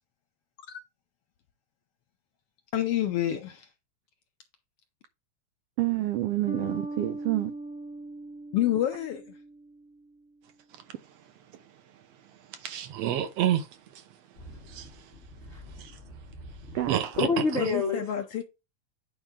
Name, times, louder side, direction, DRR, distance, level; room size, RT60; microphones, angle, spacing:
voice 1, 2.7-3.7 8.5-9.2 17.6-18.4, left 11 dB, 75° left, 1.4 m, -28 dB
voice 2, 5.8-7.5 16.7-17.0, right 15 dB, 90° right, 1.3 m, -28 dB
Bass guitar, 6.5-10.0, right 2 dB, 40° right, 0.4 m, -39 dB
voice 3, 12.5-14.0 14.6-15.1 15.7-16.0 16.9-17.3 17.5-17.7, right 11 dB, 70° right, 1.9 m, -31 dB
voice 4, 14.4-15.7 16.0-16.8 17.2-18.0, left 3 dB, 55° left, 0.7 m, -31 dB
9.2 x 4.7 x 3.7 m
omnidirectional pair, 3.3 m